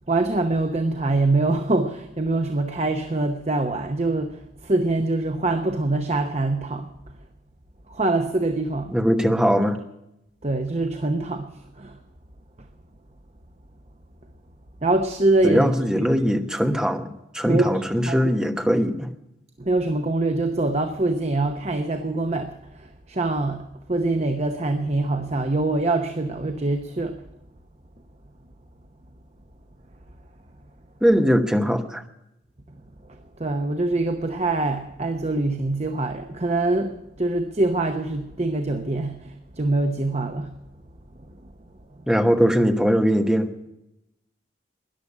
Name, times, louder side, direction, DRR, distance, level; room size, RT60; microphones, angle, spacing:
voice 1, 0.1-6.9 7.9-9.0 10.4-11.5 11.8-12.0 14.8-15.6 16.0-16.1 17.4-18.3 19.6-27.2 33.4-40.5, right 2 dB, 35° right, 7 dB, 0.9 m, -24 dB
voice 2, 8.9-9.8 15.4-17.1 17.3-19.1 31.0-32.0 42.1-43.7, equal, 5° right, 5 dB, 1.1 m, -20 dB
14.0 x 10.5 x 9.7 m, 0.88 s
head